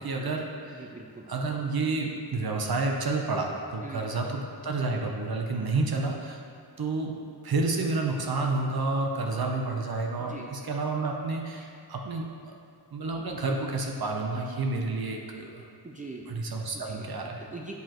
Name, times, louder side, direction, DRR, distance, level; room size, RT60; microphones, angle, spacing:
voice 1, 0.0-0.8 1.3-6.4 6.8-7.2 7.4-12.5 12.9-15.7 16.3-17.5, right 3 dB, 60° right, 1 dB, 0.7 m, -30 dB
voice 2, 0.7-1.3 3.8-4.1 5.5-5.8 10.2-10.5 11.6-11.7 15.8-16.3 16.7-17.1 17.4-17.8, right 3 dB, 20° right, -2 dB, 0.4 m, -43 dB
8.0 x 4.9 x 2.9 m, 2.3 s
wide cardioid pair, 110°, 42 cm